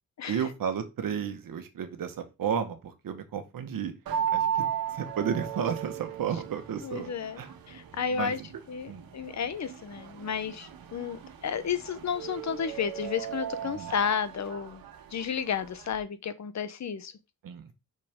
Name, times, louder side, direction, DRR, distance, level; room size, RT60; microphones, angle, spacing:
voice 1, 0.3-3.9 4.3-4.7 4.9-7.1 7.4-7.5 8.1-8.5 8.9-9.0 13.6-13.9 17.4-17.7, right 8 dB, 70° right, 1.5 m, -32 dB
sound 1, 4.1-16.0, right 9 dB, 90° right, 1.4 m, -36 dB
voice 2, 6.8-7.4 7.7-8.4 8.7-14.8 15.1-17.1, left 7 dB, 50° left, 0.9 m, -32 dB
6.2 x 5.8 x 3.7 m
cardioid pair, 105°, 35 cm